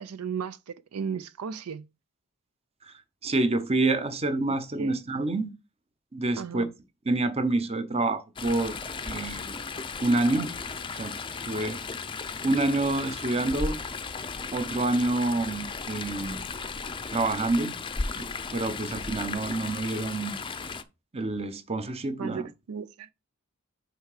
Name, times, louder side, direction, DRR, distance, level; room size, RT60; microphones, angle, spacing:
voice 1, 0.0-1.8 4.8-4.9 6.4-6.7 22.2-23.1, right 6 dB, 90° right, 0.5 m, -35 dB
voice 2, 3.2-5.5 6.1-6.7 7.0-8.7 9.0-9.6 10.0-10.5 10.9-11.1 11.4-11.8 12.4-13.8 14.5-16.4 17.1-17.7 18.1-18.3 18.5-20.4 21.1-22.5, right 2 dB, 30° right, 0.8 m, -27 dB
Chatter / Stream, 8.4-20.8, left 4 dB, 25° left, 0.5 m, -35 dB
6.4 x 4.6 x 4.9 m
head